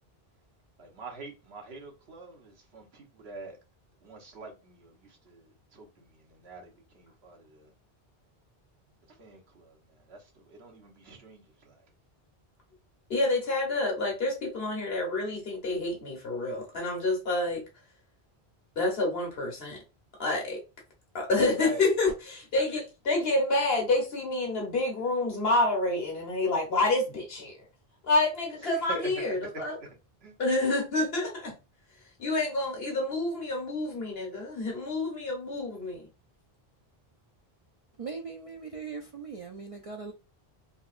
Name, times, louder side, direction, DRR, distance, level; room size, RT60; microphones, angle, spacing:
voice 1, 0.8-3.6 4.0-7.7 9.1-11.8 21.5-21.9 28.6-29.9 30.2-30.3, right 2 dB, 80° right, 1.3 m, -44 dB
voice 2, 13.1-17.6 18.7-19.8 20.2-20.6 21.1-27.7 28.0-29.8 30.4-31.5 32.2-36.1, left 2 dB, 70° left, 1.4 m, -28 dB
voice 3, 38.0-40.1, right 5 dB, 50° right, 0.4 m, -40 dB
3.9 x 2.8 x 2.5 m
omnidirectional pair, 1.0 m